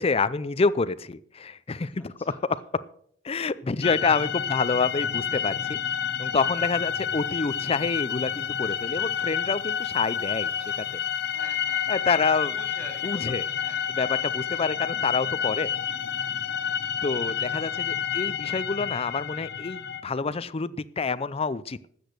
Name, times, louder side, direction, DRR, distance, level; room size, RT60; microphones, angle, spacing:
voice 1, 0.0-2.6 3.2-5.8 6.2-10.8 11.9-12.5 13.0-13.5 14.0-15.7 17.0-21.9, left 4 dB, 30° left, 16 dB, 0.5 m, -27 dB
voice 2, 1.9-2.4 3.5-4.7 6.3-6.7 11.2-12.2 12.5-13.8 14.5-14.6 16.5-16.8 17.4-18.0, left 1 dB, 10° left, -1 dB, 3.5 m, -49 dB
sound 1, 3.8-20.0, left 8 dB, 60° left, 1.0 m, -29 dB
13.0 x 8.1 x 6.7 m, 0.64 s
head